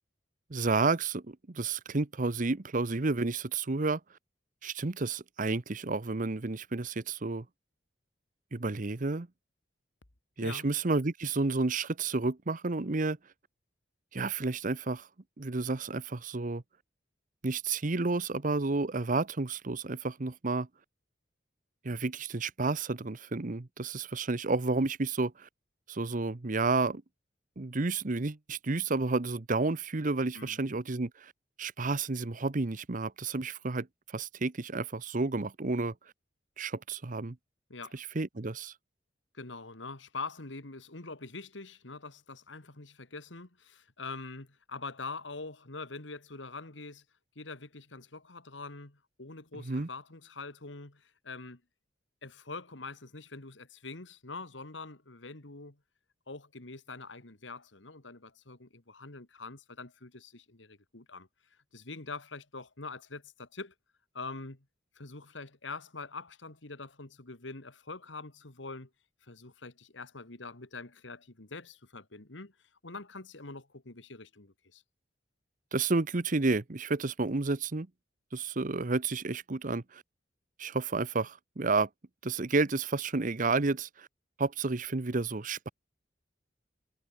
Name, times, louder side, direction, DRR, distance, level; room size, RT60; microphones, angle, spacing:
voice 1, 0.5-4.0 4.6-7.4 8.5-9.3 10.4-13.2 14.1-15.1 15.4-16.6 17.4-20.7 21.8-25.5 25.9-27.0 27.6-31.3 31.6-35.9 36.6-37.4 37.9-38.7 49.7-49.9 75.7-77.9 78.3-80.0 80.6-81.9 82.2-84.1 84.4-85.7, right 3 dB, 45° right, 0.9 m, -31 dB
voice 2, 39.3-47.0 47.4-51.6 52.2-55.8 56.3-63.7 64.1-64.7 65.0-68.9 69.2-72.5 72.8-74.8, left 3 dB, 85° left, 2.4 m, -44 dB
head